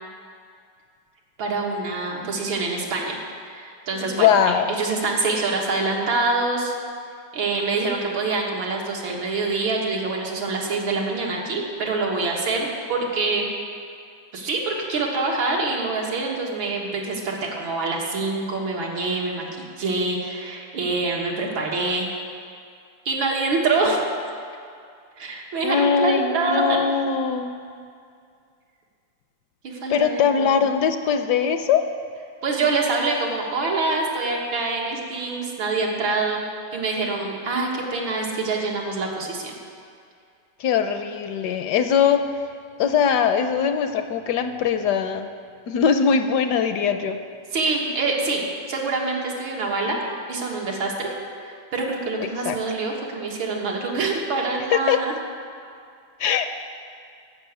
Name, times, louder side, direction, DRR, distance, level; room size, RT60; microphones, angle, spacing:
voice 1, 1.4-3.2 3.5-6.7 7.3-13.5 14.3-19.4 19.8-22.1 23.1-24.0 25.2-26.8 29.6-30.6 32.4-36.4 36.7-39.6 47.5-50.0 50.3-51.1 51.4-55.1, right 3 dB, 90° right, -2 dB, 2.4 m, -25 dB
voice 2, 4.1-4.7 25.6-27.5 29.9-31.8 40.6-42.2 42.8-45.3 45.7-47.2 52.4-52.6 54.9-55.0 56.2-56.4, left 7 dB, 75° left, 8 dB, 1.0 m, -21 dB
13.5 x 5.9 x 8.1 m, 2.3 s
omnidirectional pair, 2.1 m